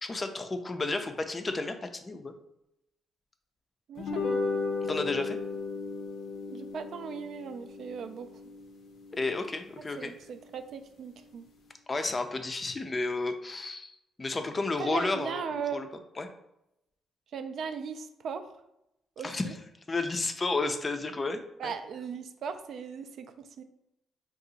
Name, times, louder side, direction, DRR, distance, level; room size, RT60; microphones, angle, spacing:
voice 1, 0.0-2.3 4.8-5.4 9.1-10.1 11.9-15.9 16.2-16.3 19.2-19.6 19.9-21.7, left 3 dB, 30° left, 7 dB, 0.4 m, -32 dB
voice 2, 3.9-4.5 6.5-8.3 10.0-11.5 14.8-15.8 17.3-18.4 19.2-19.5 21.6-23.6, right 6 dB, 65° right, 9 dB, 0.3 m, -38 dB
sound 1, 4.0-10.5, left 4 dB, 75° left, 0.5 m, -36 dB
2.7 x 2.4 x 3.9 m, 0.85 s
cardioid pair, 90°, 0 cm